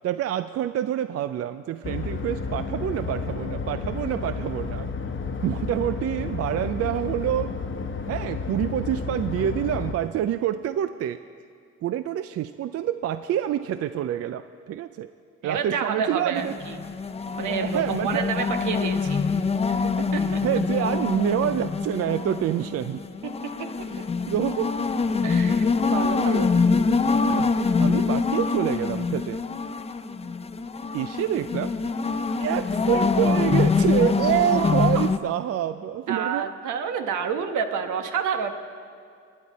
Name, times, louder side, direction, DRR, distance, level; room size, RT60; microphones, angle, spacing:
voice 1, 0.0-4.9 5.4-7.5 8.1-11.2 11.8-15.1 15.4-16.6 17.5-18.4 20.4-23.0 24.3-24.8 26.3-26.4 27.0-27.5 27.8-29.4 30.9-31.7 32.4-36.5, right 11 dB, 55° right, 12 dB, 0.4 m, -27 dB
sound 1, 1.8-9.9, left 4 dB, 40° left, 1.0 m, -31 dB
voice 2, 15.4-16.8 17.4-19.2 19.7-20.4 23.6-23.7 25.2-26.5 34.5-35.0 36.1-38.5, right 6 dB, 80° right, 6 dB, 1.2 m, -29 dB
sound 2, 16.4-35.2, left 4 dB, 20° left, 0.5 m, -25 dB
26.0 x 9.7 x 4.1 m, 2.3 s
cardioid pair, 90°, 30 cm